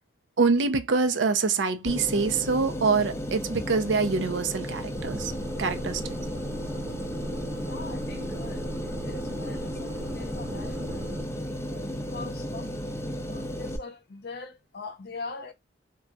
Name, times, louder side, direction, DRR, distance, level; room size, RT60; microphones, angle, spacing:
voice 1, 0.4-5.3 5.6-6.0, right 4 dB, 75° right, 0.6 m, -25 dB
sound 1, 1.9-13.8, equal, 15° left, 0.3 m, -34 dB
sound 2, 4.9-11.2, right 1 dB, 15° right, 0.7 m, -38 dB
voice 2, 7.6-11.1 11.7-12.7 13.3-15.5, left 4 dB, 60° left, 0.6 m, -42 dB
2.3 x 2.3 x 3.9 m
head